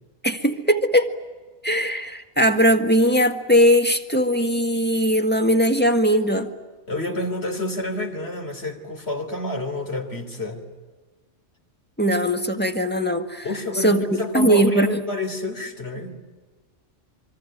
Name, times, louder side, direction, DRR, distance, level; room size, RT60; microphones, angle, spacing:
voice 1, 0.2-1.1 1.6-6.5 12.0-13.4 13.8-14.9, equal, 10° left, 5 dB, 1.8 m, -19 dB
voice 2, 6.9-10.6 13.4-16.2, left 2 dB, 55° left, 6 dB, 3.6 m, -29 dB
25.5 x 25.0 x 9.1 m, 1.4 s
omnidirectional pair, 1.3 m